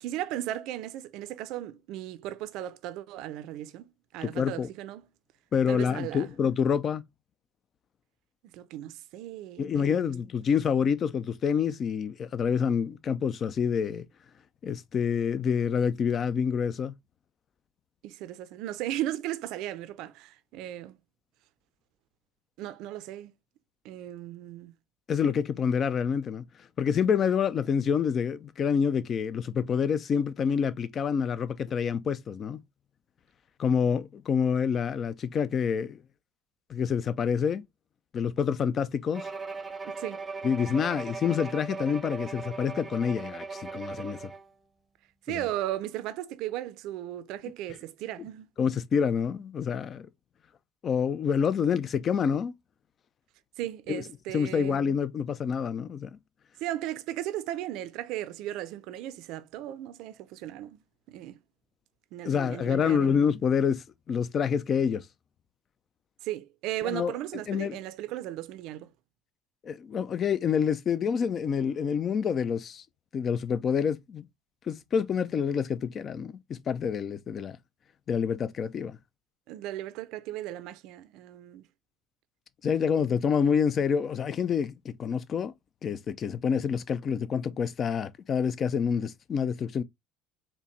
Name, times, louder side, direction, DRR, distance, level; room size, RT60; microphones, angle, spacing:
voice 1, 0.0-5.0 5.7-6.3 8.5-10.1 18.0-21.0 22.6-23.3 23.8-24.7 39.8-40.2 45.3-48.5 53.6-54.8 56.6-60.8 61.1-61.4 62.1-63.2 66.2-68.9 79.5-81.7, right 13 dB, 65° right, 0.5 m, -36 dB
voice 2, 4.2-4.7 5.5-7.0 9.6-14.1 14.6-16.9 25.1-26.4 26.8-32.6 33.6-36.0 36.7-37.7 38.1-39.3 40.4-44.3 45.3-45.4 48.6-50.1 50.8-52.5 53.9-54.0 54.3-56.2 62.2-65.1 66.8-67.1 67.5-67.8 69.6-72.8 73.1-74.2 74.7-77.6 78.1-79.0 82.6-85.5 85.8-89.8, left 7 dB, 40° left, 0.5 m, -27 dB
Bowed string instrument, 39.1-44.5, right 4 dB, 25° right, 0.7 m, -38 dB
4.4 x 2.8 x 3.1 m
hypercardioid pair, 70°, 0 cm